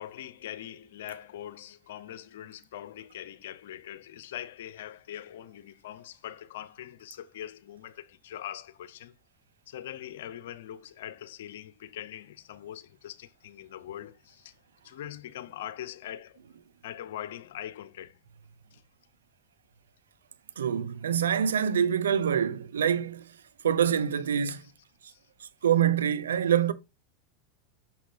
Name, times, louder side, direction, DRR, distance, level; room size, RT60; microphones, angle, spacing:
voice 1, 0.0-9.1 9.7-14.5 14.8-16.4 16.8-18.2 18.7-18.8 24.6-24.7 25.0-25.2, left 11 dB, 75° left, 0.7 m, -42 dB
voice 2, 20.6-23.3 23.6-24.6 25.6-26.7, right 8 dB, 90° right, 0.7 m, -25 dB
6.4 x 6.0 x 3.3 m
hypercardioid pair, 100°, 0 cm